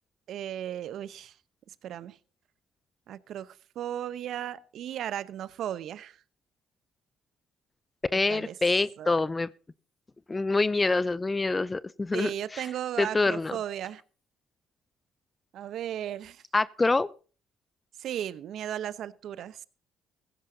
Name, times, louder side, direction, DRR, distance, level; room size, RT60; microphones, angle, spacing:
voice 1, 0.3-1.3 1.8-2.2 3.1-6.2 8.1-8.5 9.0-9.1 12.1-14.0 15.5-16.4 18.0-19.7, right 10 dB, 65° right, 0.8 m, -35 dB
voice 2, 8.1-9.5 10.3-12.7 13.0-13.6 16.5-17.1, left 3 dB, 25° left, 0.5 m, -26 dB
16.0 x 15.5 x 2.8 m
hypercardioid pair, 60°, 0 cm